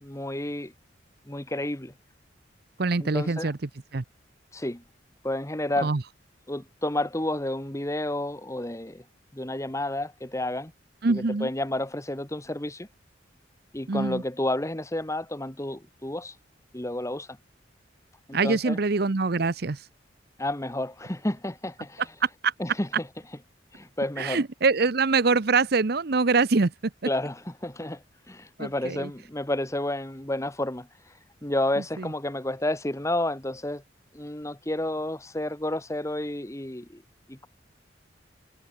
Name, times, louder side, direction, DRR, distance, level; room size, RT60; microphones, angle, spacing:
voice 1, 0.0-0.7 1.3-1.9 3.0-3.5 4.5-4.8 5.2-5.9 6.5-9.0 9.3-10.7 11.1-12.9 13.7-16.3 16.7-17.4 18.3-18.8 20.4-22.0 22.6-23.1 23.7-24.4 27.0-31.1 31.4-33.8 34.1-37.0 37.3-37.5, left 1 dB, 15° left, 1.4 m, -31 dB
voice 2, 2.8-3.6 3.9-4.0 5.8-6.0 11.0-11.5 13.9-14.2 18.3-19.8 22.4-22.5 24.2-26.7 28.6-29.1 32.0-32.1, right 4 dB, 55° right, 0.8 m, -24 dB
head